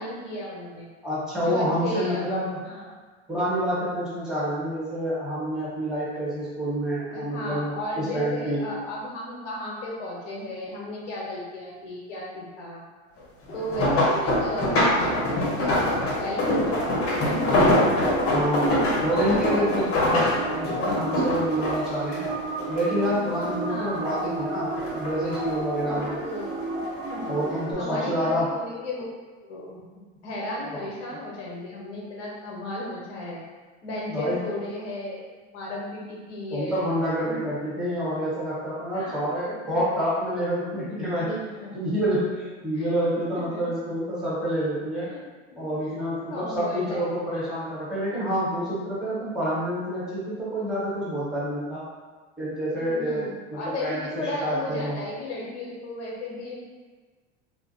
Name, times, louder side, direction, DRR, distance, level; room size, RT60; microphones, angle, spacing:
voice 1, 0.0-0.9 1.4-2.3 2.6-2.9 7.1-12.9 13.5-14.7 15.0-18.0 18.8-19.2 19.5-20.0 23.0-23.4 23.6-24.0 25.7-26.8 27.1-29.1 29.4-29.8 30.2-33.4 33.8-35.2 35.5-36.9 37.2-37.4 38.9-39.9 40.9-41.0 41.6-41.7 42.7-42.9 43.3-43.7 45.1-45.2 45.5-45.6 45.9-46.0 46.3-47.3 52.7-56.5, left 1 dB, 70° left, -4 dB, 0.8 m, -35 dB
voice 2, 1.0-2.6 3.3-8.6 13.9-14.0 18.3-18.7 19.0-22.2 22.7-26.2 27.3-28.5 30.7-30.8 34.1-34.4 36.5-41.4 41.7-45.1 45.6-51.8 52.4-55.0, equal, ahead, -9 dB, 1.1 m, -28 dB
sound 1, 13.5-23.1 23.4-24.4 24.8-26.1 26.8-27.1 27.6-27.7, left 1 dB, 40° left, 0.8 m, -24 dB
sound 2, 20.4-27.7, right 3 dB, 80° right, 0.9 m, -32 dB
2.5 x 2.1 x 2.6 m, 1.4 s
hypercardioid pair, 90°, 36 cm